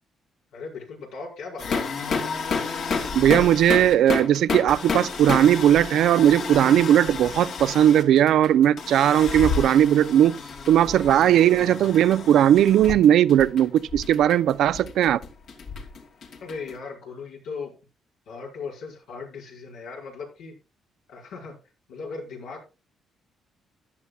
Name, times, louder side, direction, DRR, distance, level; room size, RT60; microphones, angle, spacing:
voice 1, 0.5-1.9 16.4-17.7 18.3-20.5 21.1-21.5 21.9-22.8, left 4 dB, 90° left, 5.5 m, -37 dB
sound 1, 1.6-16.7, left 5 dB, 70° left, 2.5 m, -31 dB
voice 2, 3.1-10.3 10.7-15.2, right 11 dB, 80° right, 0.5 m, -18 dB
14.5 x 10.5 x 2.4 m
cardioid pair, 90°, 0 cm